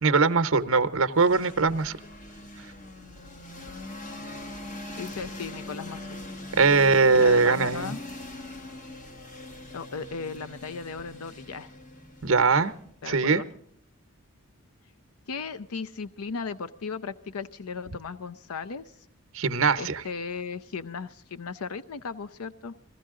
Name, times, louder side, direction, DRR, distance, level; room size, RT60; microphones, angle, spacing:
voice 1, 0.0-2.0 6.6-7.9 12.2-12.7 13.1-13.4 19.3-20.0, right 4 dB, 60° right, 10 dB, 0.8 m, -21 dB
sound 1, 1.2-12.9, left 1 dB, 35° left, 1.1 m, -42 dB
voice 2, 5.0-6.1 7.1-8.0 9.7-11.7 13.0-13.4 15.3-19.0 19.8-22.8, left 5 dB, 80° left, 13 dB, 0.6 m, -36 dB
21.0 x 15.5 x 3.7 m, 0.65 s
head